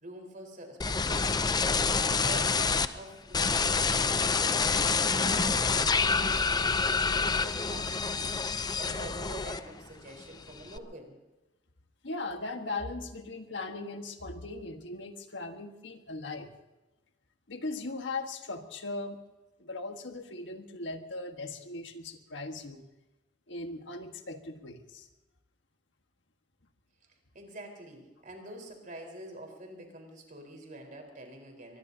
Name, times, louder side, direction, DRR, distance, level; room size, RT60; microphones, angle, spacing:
voice 1, 0.0-1.7 2.1-8.4 8.8-11.2 27.3-31.8, right 1 dB, 45° right, 2 dB, 4.4 m, -46 dB
sound 1, 0.8-2.9 3.3-9.9 10.2-10.8, left 4 dB, 20° left, 0.6 m, -27 dB
voice 2, 12.0-16.5 17.5-19.2 19.6-22.9 23.5-25.1, left 2 dB, 75° left, 5 dB, 1.5 m, -39 dB
23.5 x 21.5 x 2.8 m, 1.0 s
head